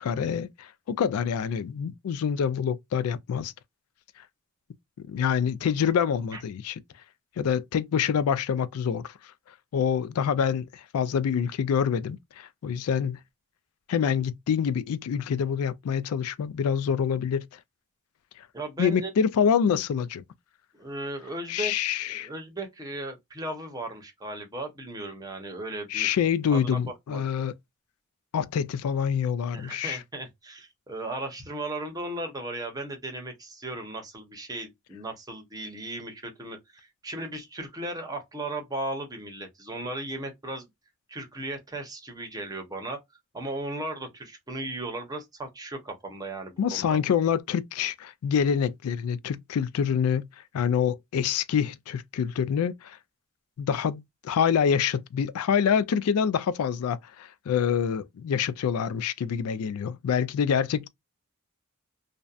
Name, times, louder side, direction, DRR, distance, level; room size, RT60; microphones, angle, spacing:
voice 1, 0.0-3.5 5.1-6.7 7.4-9.1 9.7-13.2 13.9-17.5 18.4-18.5 18.8-20.2 21.5-22.3 25.9-27.5 28.3-30.0 46.6-50.3 50.5-53.0 53.6-60.9, left 7 dB, 80° left, 0.3 m, -26 dB
voice 2, 18.5-19.1 20.7-21.7 22.0-26.1 26.5-26.8 27.1-27.2 29.5-40.7 41.1-43.0 43.3-47.0, right 2 dB, 15° right, 0.7 m, -36 dB
2.6 x 2.1 x 2.3 m
head